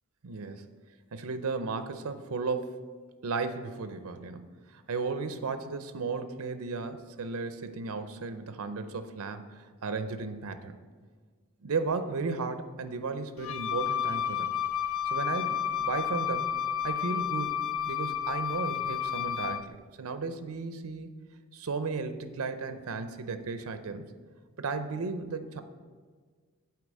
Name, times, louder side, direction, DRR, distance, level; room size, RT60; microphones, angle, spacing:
voice 1, 0.2-0.7 1.1-2.9 3.2-9.5 9.8-10.8 11.6-14.5 15.1-16.5 16.8-17.6 17.8-21.1 21.5-24.0 24.6-25.6, right 4 dB, 85° right, 10 dB, 0.6 m, -34 dB
Wind instrument woodwind instrument, 13.4-19.7, left 9 dB, 70° left, 0.4 m, -31 dB
8.1 x 4.6 x 7.3 m, 1.5 s
head